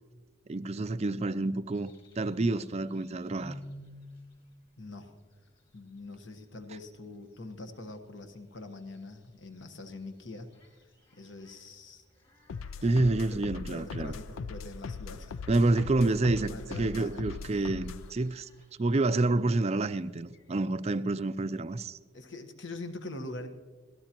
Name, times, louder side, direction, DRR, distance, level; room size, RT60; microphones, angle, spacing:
voice 1, 0.5-3.6 12.8-14.1 15.5-18.5 18.8-22.0, right 2 dB, 30° right, 0.4 m, -28 dB
sound 1, 1.7-20.6, left 1 dB, 30° left, 4.3 m, -56 dB
voice 2, 4.8-5.1 5.7-10.5 11.1-12.0 12.8-13.4 13.7-15.4 15.8-15.9 16.3-17.6 22.1-23.5, left 2 dB, 60° left, 1.3 m, -44 dB
sound 2, 12.5-18.1, left 5 dB, 85° left, 0.4 m, -40 dB
25.5 x 18.0 x 3.0 m
head